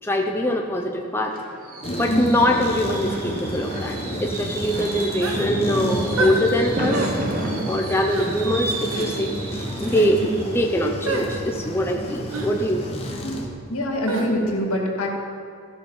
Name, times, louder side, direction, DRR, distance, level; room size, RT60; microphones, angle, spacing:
voice 1, 0.0-1.3 2.0-7.1 7.7-13.0, equal, 10° left, 1 dB, 0.5 m, -23 dB
Fireworks, 0.6-12.3 12.7-13.0 13.3-13.4, right 2 dB, 40° right, 0.9 m, -33 dB
sound 1, 1.8-13.5, equal, 25° left, 1.2 m, -30 dB
voice 2, 2.0-2.3 13.2-13.4 13.7-15.1, left 1 dB, 80° left, 0 dB, 2.0 m, -24 dB
sound 2, 5.2-5.5 6.2-6.4 6.9-7.2 8.1-8.3 8.9-9.1 9.8-10.1 11.1-11.3 12.3-12.5 14.1-14.3, right 2 dB, 80° right, 1.3 m, -27 dB
14.5 x 6.1 x 5.4 m, 2.3 s
head